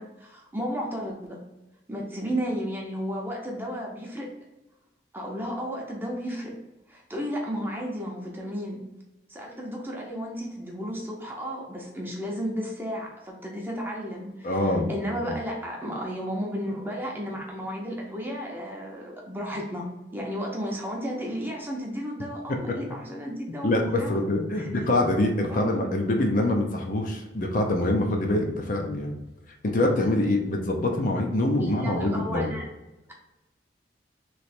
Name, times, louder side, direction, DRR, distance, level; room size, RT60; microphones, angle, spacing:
voice 1, 0.0-1.4 1.9-4.4 5.1-6.5 6.9-8.8 9.3-19.8 20.1-24.2 24.6-24.9 25.5-25.9 31.6-32.7, equal, 10° right, -2 dB, 0.8 m, -33 dB
voice 2, 14.4-14.9 23.6-29.1 29.6-32.5, left 1 dB, 45° left, 2 dB, 0.6 m, -25 dB
3.2 x 3.0 x 4.3 m, 1.0 s
head